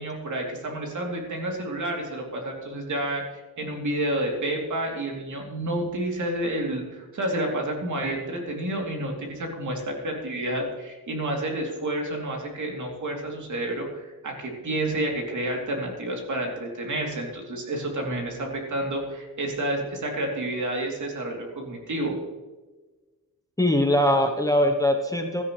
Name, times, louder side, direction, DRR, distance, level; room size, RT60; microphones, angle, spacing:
voice 1, 0.0-22.1, right 1 dB, 50° right, 1 dB, 3.0 m, -30 dB
voice 2, 23.6-25.4, left 1 dB, 10° left, 3 dB, 0.8 m, -21 dB
16.5 x 13.0 x 3.2 m, 1.2 s
wide cardioid pair, 180°, 37 cm